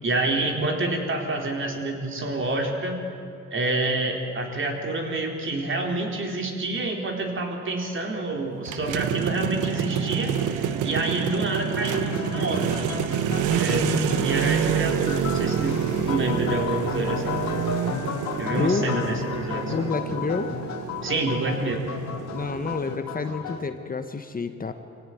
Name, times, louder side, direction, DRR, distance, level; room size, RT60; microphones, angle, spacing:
voice 1, 0.0-3.0 3.5-12.8 13.5-15.8 16.1-17.4 18.4-19.9 21.0-21.8, right 2 dB, 40° right, 2 dB, 4.0 m, -28 dB
sound 1, 8.7-23.0, right 9 dB, 90° right, 1.1 m, -28 dB
sound 2, 9.6-19.9, right 1 dB, 10° right, 2.2 m, -42 dB
sound 3, 11.8-23.6, left 8 dB, 65° left, 1.8 m, -34 dB
voice 2, 13.8-14.3 17.9-18.1 18.5-19.0 19.6-20.6 22.3-24.7, left 4 dB, 30° left, 8 dB, 1.3 m, -29 dB
24.0 x 17.0 x 9.3 m, 2.5 s
cardioid pair, 90°, 30 cm